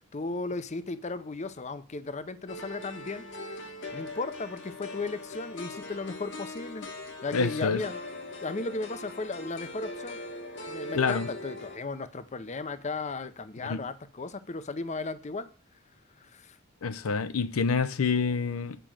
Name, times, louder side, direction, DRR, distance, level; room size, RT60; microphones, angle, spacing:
voice 1, 0.0-6.9 7.2-8.0 8.4-10.2 10.7-15.5 16.2-16.6, left 3 dB, 35° left, 0.6 m, -36 dB
sound 1, 2.5-11.8, left 2 dB, 60° left, 1.3 m, -41 dB
voice 2, 7.3-7.8 10.9-11.3 13.6-13.8 16.8-18.8, left 5 dB, 75° left, 0.6 m, -27 dB
9.1 x 5.0 x 7.5 m
head